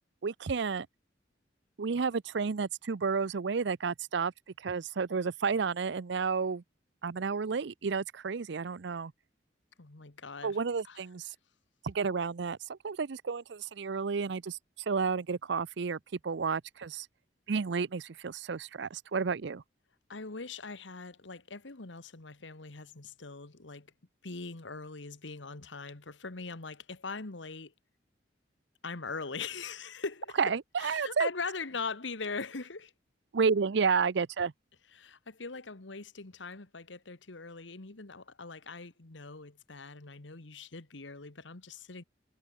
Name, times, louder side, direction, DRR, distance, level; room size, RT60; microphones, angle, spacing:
voice 1, 0.2-0.9 1.8-4.3 4.6-6.6 7.0-9.1 10.4-11.3 11.8-14.6 14.9-17.1 17.5-19.6 30.4-31.3 33.3-34.5, right 5 dB, 65° right, 0.6 m, -31 dB
voice 2, 9.8-10.6 10.8-11.0 20.1-23.9 24.2-27.7 28.8-32.9 34.9-42.0, left 4 dB, 75° left, 1.6 m, -41 dB
head